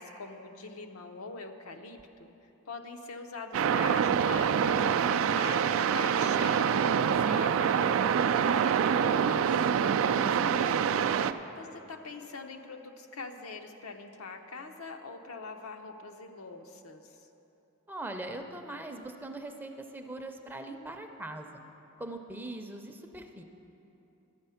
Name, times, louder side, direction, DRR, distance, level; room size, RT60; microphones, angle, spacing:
voice 1, 0.0-6.8 7.2-9.5 11.5-17.3, left 4 dB, 85° left, 5 dB, 0.8 m, -43 dB
sound 1, 3.5-11.3, right 7 dB, 65° right, 0.3 m, -26 dB
voice 2, 9.8-10.9 17.9-21.6 22.0-23.4, right 2 dB, 10° right, 4 dB, 0.5 m, -41 dB
12.0 x 8.2 x 5.7 m, 3.0 s
head